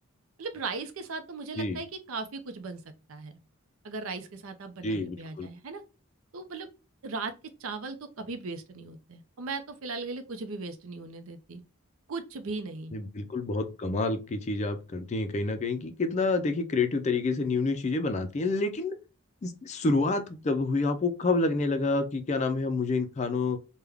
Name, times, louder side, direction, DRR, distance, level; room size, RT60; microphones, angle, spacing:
voice 1, 0.4-2.8 3.1-3.3 3.8-5.8 6.3-6.7 7.0-7.3 7.6-11.6 12.1-12.9, right 4 dB, 70° right, 0.6 m, -37 dB
voice 2, 4.8-5.5 12.9-18.9 19.4-23.6, left 3 dB, 30° left, 0.4 m, -28 dB
3.5 x 2.2 x 3.4 m
head